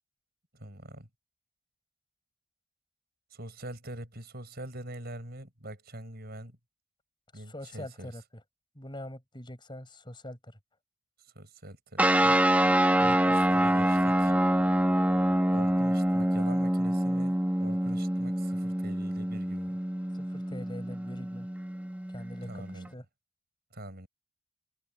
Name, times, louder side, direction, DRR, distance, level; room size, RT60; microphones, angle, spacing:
voice 1, 0.5-1.1 3.3-6.6 7.3-8.1 11.3-12.4 13.0-14.4 15.5-19.8 22.5-22.9 23.7-24.1, right 1 dB, 50° right, 6.2 m, -44 dB
voice 2, 7.3-8.2 8.7-10.6 20.1-21.5 22.1-23.0, left 1 dB, 25° left, 7.4 m, -43 dB
sound 1, 12.0-22.9, right 1 dB, 10° right, 1.5 m, -26 dB
head